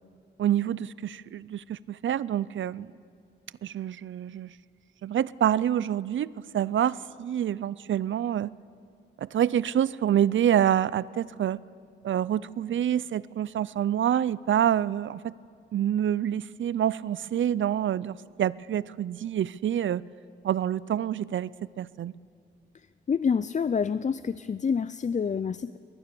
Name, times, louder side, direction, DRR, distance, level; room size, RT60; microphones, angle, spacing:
voice 1, 0.4-2.9 3.6-4.5 5.0-8.5 9.2-11.6 12.0-15.3 15.7-20.0 20.4-21.5 21.8-22.1, right 10 dB, 75° right, 20 dB, 0.4 m, -27 dB
voice 2, 23.1-25.8, left 6 dB, 40° left, 15 dB, 0.4 m, -27 dB
21.5 x 19.0 x 6.9 m, 2.3 s
cardioid pair, 80°, 20 cm